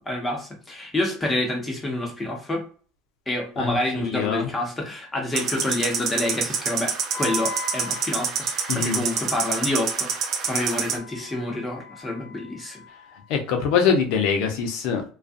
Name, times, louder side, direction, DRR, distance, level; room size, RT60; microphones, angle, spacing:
voice 1, 0.0-2.6 3.3-10.1 10.4-12.8, left 1 dB, 15° left, 1 dB, 1.0 m, -28 dB
voice 2, 4.0-4.5 8.7-9.0 13.3-15.0, left 6 dB, 70° left, 4 dB, 0.8 m, -23 dB
sound 1, 5.3-11.0, right 6 dB, 50° right, 0.6 m, -27 dB
Wind instrument woodwind instrument, 7.1-13.2, left 3 dB, 45° left, 1.0 m, -40 dB
2.4 x 2.4 x 2.5 m, 0.40 s
supercardioid pair, 120°, 0 cm